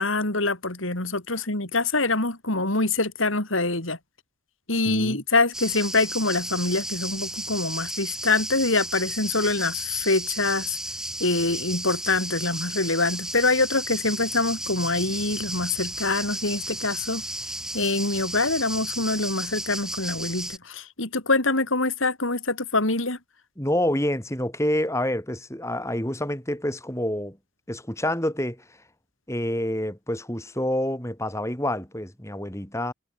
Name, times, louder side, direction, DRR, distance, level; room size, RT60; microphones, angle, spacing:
voice 1, 0.0-4.0 4.7-10.8 11.2-17.2 17.7-23.2, left 3 dB, 85° left, 5.4 m, -25 dB
voice 2, 4.8-5.2 23.6-27.4 27.7-28.6 29.3-32.9, left 1 dB, 15° left, 6.8 m, -27 dB
sound 1, 5.5-20.6, right 1 dB, 5° right, 2.4 m, -34 dB
head